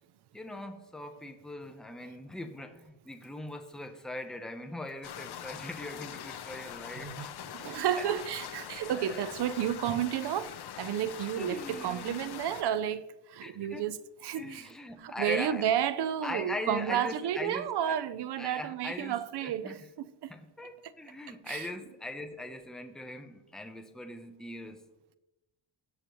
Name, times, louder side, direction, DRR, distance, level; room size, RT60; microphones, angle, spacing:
voice 1, 0.3-7.3 8.0-8.1 8.7-9.2 11.4-12.3 13.4-13.9 14.3-15.7 16.2-18.0 18.4-19.9 20.3-24.8, left 1 dB, ahead, 0.7 m, -41 dB
sound 1, 5.0-12.6, left 10 dB, 50° left, 0.8 m, -43 dB
voice 2, 7.0-7.3 7.5-10.5 10.8-13.1 13.3-14.0 14.2-14.7 15.0-20.3 21.5-21.7, right 10 dB, 55° right, 0.6 m, -31 dB
17.5 x 6.7 x 3.1 m
cardioid pair, 130°, 49 cm